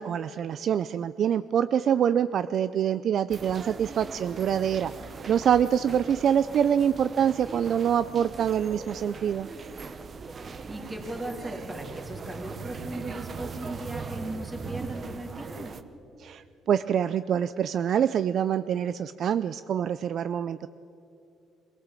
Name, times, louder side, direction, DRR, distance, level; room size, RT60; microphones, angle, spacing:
voice 1, 0.0-9.5 16.2-20.7, right 9 dB, 50° right, 14 dB, 0.4 m, -25 dB
sound 1, 3.3-15.8, right 5 dB, 30° right, 0.8 m, -40 dB
voice 2, 10.3-15.7, right 1 dB, 15° right, 2 dB, 3.1 m, -38 dB
23.5 x 18.0 x 7.5 m, 2.9 s
cardioid pair, 145°, 0 cm